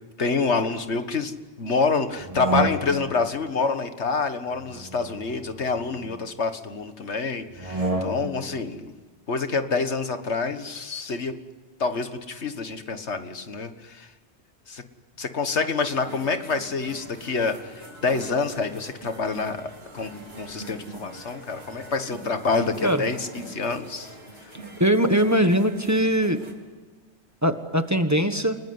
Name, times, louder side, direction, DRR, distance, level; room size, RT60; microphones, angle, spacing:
voice 1, 0.2-1.3 1.6-8.9 9.3-11.4 11.8-14.1 14.7-14.8 15.2-24.1 24.4-24.5, left 4 dB, 80° left, 9 dB, 1.9 m, -27 dB
sound 1, 2.2-3.3 4.5-6.2 7.5-8.5, right 2 dB, 30° right, 2.1 m, -30 dB
sound 2, 15.8-26.5, right 2 dB, 65° right, 4.2 m, -43 dB
voice 2, 24.8-26.4 27.4-28.6, equal, 15° right, 8 dB, 1.4 m, -21 dB
30.0 x 20.0 x 9.7 m, 1.4 s
omnidirectional pair, 1.1 m